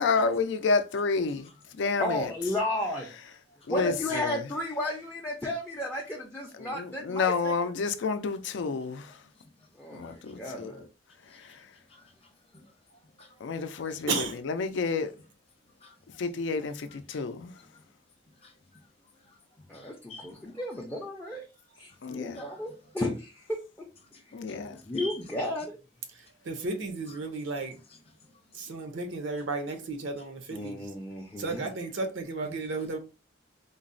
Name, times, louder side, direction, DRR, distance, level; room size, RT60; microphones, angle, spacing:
voice 1, 0.0-1.5 1.8-2.3 3.7-4.4 6.5-9.2 9.9-10.7 11.3-11.6 13.4-15.1 16.2-17.5 22.0-22.4 24.3-24.8, left 4 dB, 70° left, 0.4 m, -30 dB
voice 2, 2.0-3.1 3.7-7.5 9.8-10.9 19.7-21.4 21.8-23.6 24.8-25.8 30.5-31.7, left 1 dB, 10° left, 0.4 m, -33 dB
voice 3, 10.0-10.4 11.2-11.6 11.9-12.7 13.2-13.3 13.7-13.8 15.8-16.0 17.1-17.2 17.5-17.8 18.4-20.6 22.3-22.6 24.1-24.2 24.5-25.1 28.2-28.3 31.3-31.4, left 2 dB, 30° left, 0.8 m, -49 dB
voice 4, 14.1-14.4 26.1-27.7 28.5-30.9 31.4-33.0, right 3 dB, 75° right, 0.6 m, -34 dB
3.8 x 2.0 x 2.5 m
head